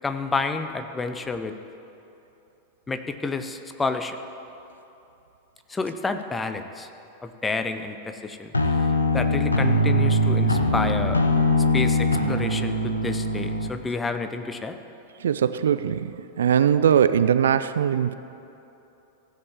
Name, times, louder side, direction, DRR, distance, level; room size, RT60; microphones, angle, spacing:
voice 1, 0.0-1.5 2.9-4.2 5.7-6.9 7.2-8.5 9.1-11.2 11.7-14.8, left 3 dB, 15° left, 8 dB, 0.7 m, -29 dB
sound 1, 8.5-13.7, left 1 dB, 80° left, 0.8 m, -22 dB
voice 2, 15.2-18.1, right 8 dB, 65° right, 13 dB, 0.3 m, -21 dB
15.5 x 5.3 x 7.3 m, 2.9 s
figure-of-eight pair, 90°, 0 cm